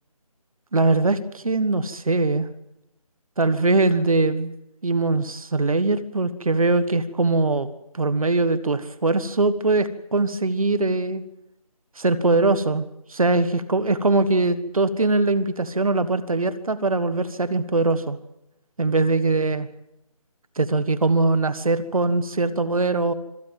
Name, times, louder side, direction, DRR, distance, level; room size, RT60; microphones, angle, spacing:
voice 1, 0.7-2.5 3.4-4.5 4.8-7.7 7.9-11.2 12.0-18.2 18.8-19.7 20.6-23.1, right 3 dB, 70° right, 14 dB, 1.5 m, -21 dB
25.5 x 18.5 x 7.6 m, 0.85 s
figure-of-eight pair, 165°, 19 cm